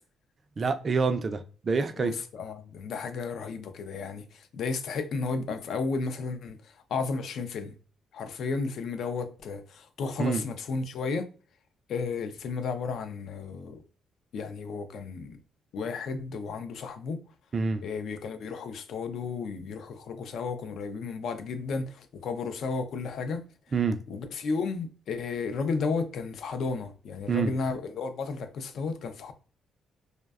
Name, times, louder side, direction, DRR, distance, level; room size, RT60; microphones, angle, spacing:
voice 1, 0.6-2.1 10.2-10.4 17.5-17.8 23.7-24.0 27.3-27.5, right 5 dB, 40° right, 0.3 m, -26 dB
voice 2, 2.0-6.6 6.9-7.7 8.1-11.2 11.9-13.8 14.3-15.4 15.7-17.2 17.8-23.4 24.1-29.3, left 4 dB, 70° left, 0.4 m, -33 dB
2.6 x 2.1 x 2.3 m
cardioid pair, 90°, 0 cm